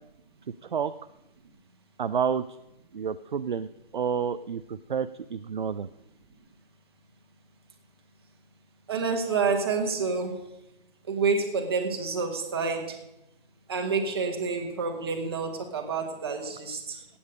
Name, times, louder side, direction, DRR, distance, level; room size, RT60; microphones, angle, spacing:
voice 1, 2.0-2.4 2.9-3.7 3.9-5.9 17.0-17.1, right 7 dB, 55° right, 11 dB, 0.5 m, -29 dB
voice 2, 8.9-10.4 11.1-13.0 13.7-17.0, right 4 dB, 25° right, 3 dB, 1.5 m, -28 dB
15.5 x 8.7 x 5.1 m, 0.89 s
hypercardioid pair, 170°, 29 cm